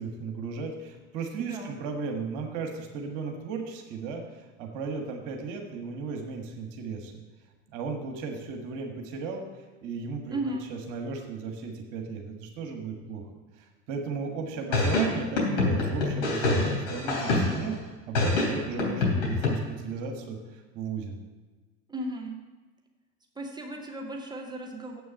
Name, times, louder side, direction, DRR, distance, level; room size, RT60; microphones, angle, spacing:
voice 1, 0.0-7.1 7.7-13.2 13.6-17.7 18.1-21.2, right 4 dB, 50° right, 3 dB, 1.5 m, -35 dB
voice 2, 1.4-1.8 10.3-10.7 21.9-22.4 23.3-25.0, right 1 dB, 10° right, 1 dB, 1.4 m, -35 dB
sound 1, 14.7-17.7 18.1-19.5, left 2 dB, 60° left, 3.2 m, -26 dB
7.9 x 6.2 x 7.2 m, 1.3 s
figure-of-eight pair, 75°, 38 cm